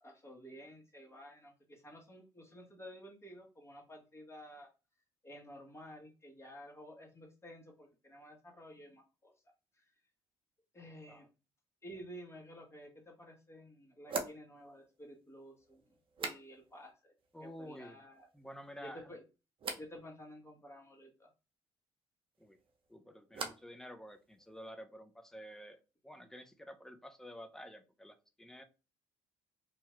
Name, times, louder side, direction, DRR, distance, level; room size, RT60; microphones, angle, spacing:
voice 1, 0.0-4.7 5.2-9.3 9.7-9.9 10.7-11.3 11.8-15.8 16.2-17.1 17.4-18.3 18.8-19.2 19.7-21.3, equal, 25° left, 1.3 m, -52 dB
sound 1, 12.8-12.9 14.1-16.9 17.2-17.8 18.1-18.7 19.6-19.9 22.3-23.8 24.1-24.7, right 4 dB, 50° right, 0.7 m, -45 dB
voice 2, 17.3-18.0 18.3-19.1 22.4-22.6 22.9-28.6, equal, 5° left, 0.6 m, -50 dB
2.8 x 2.3 x 3.1 m
supercardioid pair, 65°, 12 cm